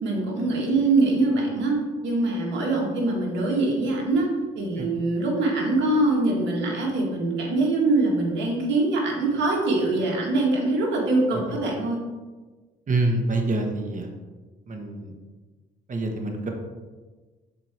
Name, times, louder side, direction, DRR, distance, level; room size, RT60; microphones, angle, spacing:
voice 1, 0.0-4.3 4.6-12.0, right 2 dB, 70° right, -1 dB, 1.9 m, -23 dB
voice 2, 12.9-14.1 14.7-15.1 15.9-16.5, right 2 dB, 40° right, 3 dB, 1.3 m, -26 dB
6.0 x 4.7 x 4.4 m, 1.3 s
supercardioid pair, 80°, 19 cm